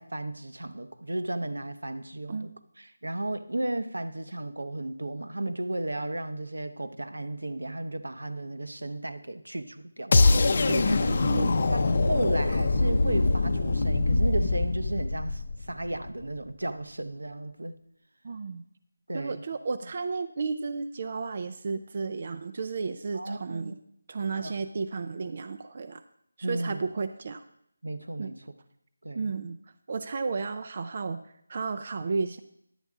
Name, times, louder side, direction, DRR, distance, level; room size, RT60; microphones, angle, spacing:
voice 1, 0.0-2.5 2.8-10.2 10.6-11.0 11.7-17.8 19.1-19.4 23.1-23.7 24.4-24.5 26.4-26.8 27.8-28.4 29.0-29.3, right 1 dB, 85° right, 10 dB, 0.7 m, -34 dB
sound 1, 10.1-16.1, left 3 dB, 45° left, 0.6 m, -24 dB
voice 2, 11.0-11.5 18.2-18.6 19.1-23.8 24.1-26.0 26.4-27.4 28.2-28.3 29.1-29.6 29.9-31.2 31.5-32.4, right 4 dB, 40° right, 10 dB, 0.4 m, -33 dB
10.5 x 8.1 x 3.6 m, 0.73 s
figure-of-eight pair, 165°, 0 cm